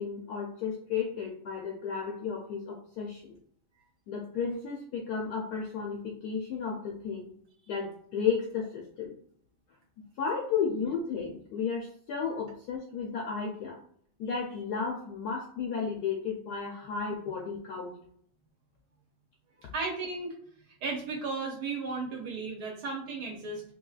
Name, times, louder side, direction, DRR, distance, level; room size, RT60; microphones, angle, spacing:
voice 1, 0.0-3.3 4.1-7.3 7.7-9.1 10.0-13.8 14.2-17.9, left 6 dB, 75° left, 0 dB, 0.9 m, -33 dB
voice 2, 19.7-20.3 20.8-23.6, right 4 dB, 65° right, -1 dB, 1.1 m, -34 dB
3.9 x 2.7 x 2.3 m, 0.63 s
omnidirectional pair, 2.2 m